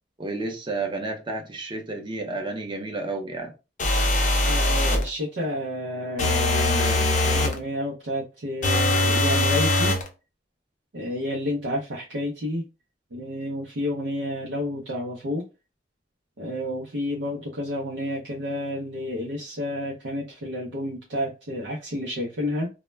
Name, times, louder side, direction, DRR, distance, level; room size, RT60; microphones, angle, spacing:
voice 1, 0.2-3.5, right 2 dB, 25° right, 0.6 m, -31 dB
sound 1, 3.8-5.1 6.2-7.6 8.6-10.1, left 2 dB, 45° left, 0.5 m, -21 dB
voice 2, 4.4-10.0 10.9-12.6 13.1-15.4 16.4-22.7, left 1 dB, 85° right, 0.6 m, -30 dB
2.1 x 2.1 x 3.2 m
head